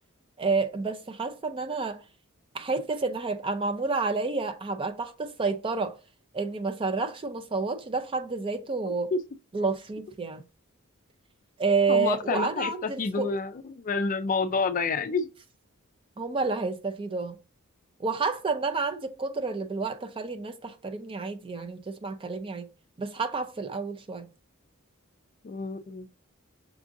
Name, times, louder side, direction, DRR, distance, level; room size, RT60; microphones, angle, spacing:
voice 1, 0.4-2.0 2.5-6.0 6.3-9.1 9.5-10.4 11.6-13.3 16.2-17.4 18.0-22.7 23.0-24.3, right 4 dB, 25° right, 0.4 m, -29 dB
voice 2, 11.9-15.3 25.4-26.1, left 4 dB, 40° left, 0.4 m, -29 dB
5.9 x 2.5 x 2.6 m
head